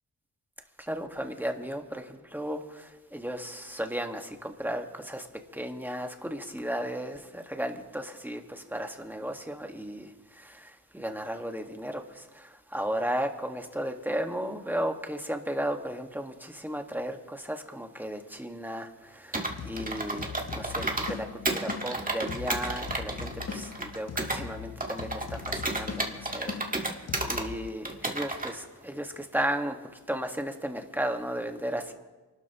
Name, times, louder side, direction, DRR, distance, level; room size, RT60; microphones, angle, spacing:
voice 1, 0.8-5.3 5.5-29.8 30.1-31.9, equal, 5° right, 4 dB, 1.7 m, -35 dB
Computer keyboard, 19.3-21.1 21.5-24.4 24.8-27.5 27.9-28.5, right 2 dB, 20° right, 1.9 m, -32 dB
sound 1, 19.5-27.7, left 6 dB, 40° left, 0.9 m, -40 dB
27.5 x 12.5 x 3.1 m, 1.2 s
cardioid pair, 70°, 40 cm